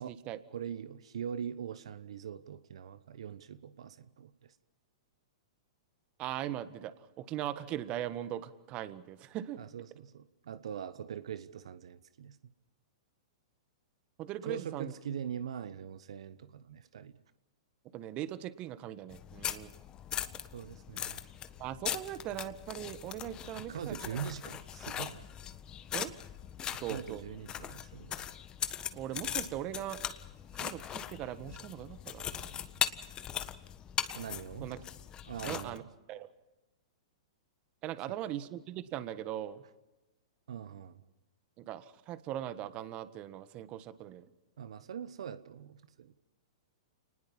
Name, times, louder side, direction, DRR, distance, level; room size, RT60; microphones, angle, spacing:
voice 1, 0.0-0.4 6.2-9.6 14.2-14.9 17.9-19.7 21.6-24.0 25.9-26.1 26.8-27.2 28.9-30.0 30.5-32.5 34.6-34.8 35.4-35.8 36.1-36.3 37.8-39.6 41.6-44.3, right 12 dB, 35° right, 13 dB, 1.4 m, -40 dB
voice 2, 0.5-4.5 9.6-12.4 14.4-17.2 20.5-21.2 23.7-25.2 26.7-28.3 34.1-34.7 35.3-35.8 40.5-41.0 44.6-46.2, right 8 dB, 70° right, 13 dB, 1.1 m, -42 dB
sound 1, 19.1-35.8, left 9 dB, 25° left, 1.4 m, -40 dB
29.0 x 20.0 x 5.5 m, 1.0 s
hypercardioid pair, 115°, 3 cm